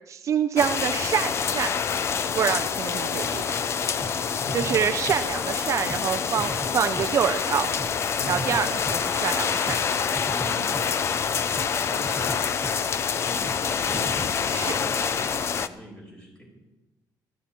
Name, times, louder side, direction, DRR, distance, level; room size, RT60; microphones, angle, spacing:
voice 1, 0.1-1.7 2.3-3.4 4.5-7.7 8.3-9.8 14.5-14.7, right 8 dB, 40° right, 8 dB, 0.5 m, -26 dB
sound 1, 0.6-15.7, left 6 dB, 35° left, 0.6 m, -26 dB
sound 2, 3.2-9.9 10.1-11.3 11.6-11.8 12.0-13.2 13.5-13.7 13.9-14.4, right 2 dB, 10° right, 0.8 m, -39 dB
voice 2, 4.4-4.9 8.2-8.8 10.3-10.9 11.7-12.3 13.2-16.5, equal, 10° left, -1 dB, 5.2 m, -41 dB
20.0 x 14.0 x 4.4 m, 1.0 s
cardioid pair, 175°, 8 cm